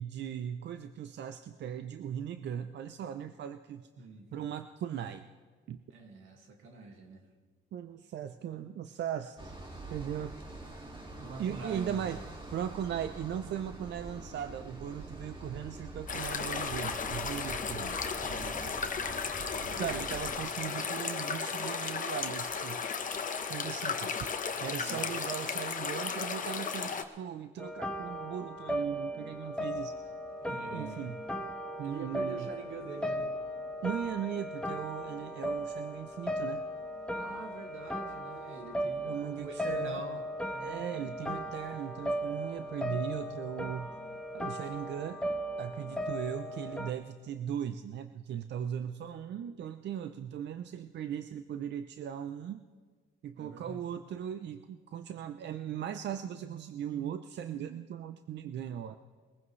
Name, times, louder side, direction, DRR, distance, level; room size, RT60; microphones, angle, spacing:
voice 1, 0.0-3.9 4.3-5.3 5.7-5.8 7.7-9.5 9.9-10.6 11.4-12.2 12.5-18.0 19.8-22.8 23.5-24.3 24.6-30.0 30.7-31.2 31.8-32.5 33.8-36.6 39.0-40.0 40.6-44.0 44.3-45.2 45.6-52.6 53.2-59.0, right 9 dB, 60° right, 10 dB, 0.6 m, -38 dB
voice 2, 5.9-7.2 11.2-12.0 18.2-18.7 19.5-20.0 20.7-20.8 24.7-25.0 30.4-31.1 31.8-33.3 37.1-40.2 40.5-40.9 53.4-53.8, right 4 dB, 85° right, 3 dB, 2.0 m, -45 dB
sound 1, 9.4-20.4, right 2 dB, 25° right, 2.2 m, -45 dB
sound 2, 16.1-27.0, left 5 dB, 40° left, 1.1 m, -35 dB
sound 3, 27.6-46.9, equal, 5° left, 1.2 m, -37 dB
21.5 x 15.0 x 3.2 m, 1.5 s
cardioid pair, 90°, 20 cm